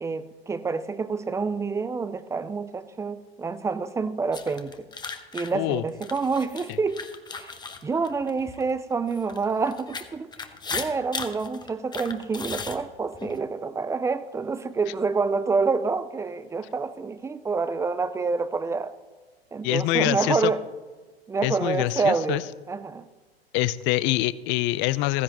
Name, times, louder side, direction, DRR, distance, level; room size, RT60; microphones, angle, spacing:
voice 1, 0.0-4.9 5.3-7.0 7.4-7.6 7.8-18.9 19.5-20.6 21.3-23.1, right 4 dB, 10° right, 15 dB, 0.4 m, -27 dB
sound 1, 4.3-8.6 9.1-13.4, left 5 dB, 15° left, 1.0 m, -36 dB
voice 2, 5.5-5.8 19.6-20.5 21.4-22.4 23.5-25.2, left 17 dB, 40° left, 18 dB, 0.6 m, -25 dB
15.5 x 15.5 x 3.0 m, 1.3 s
hypercardioid pair, 100°, 31 cm